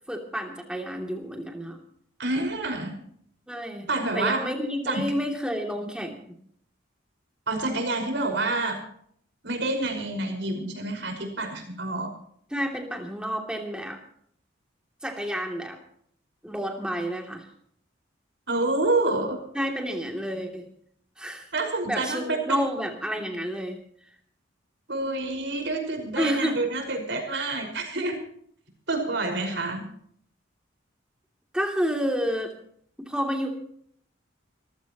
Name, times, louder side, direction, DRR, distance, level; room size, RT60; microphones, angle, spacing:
voice 1, 0.1-1.8 3.5-3.9 4.1-6.4 12.5-14.0 15.0-15.8 16.4-17.5 19.5-20.6 21.2-21.5 21.9-23.8 26.2-26.6 31.5-32.5 33.1-33.5, equal, 5° right, 2 dB, 2.8 m, -30 dB
voice 2, 2.2-3.0 3.9-4.5 4.9-5.2 7.5-8.8 9.4-12.1 18.5-19.5 21.5-22.7 24.9-28.2 28.9-29.9, right 2 dB, 60° right, 4 dB, 5.4 m, -28 dB
25.0 x 15.5 x 3.1 m, 0.63 s
head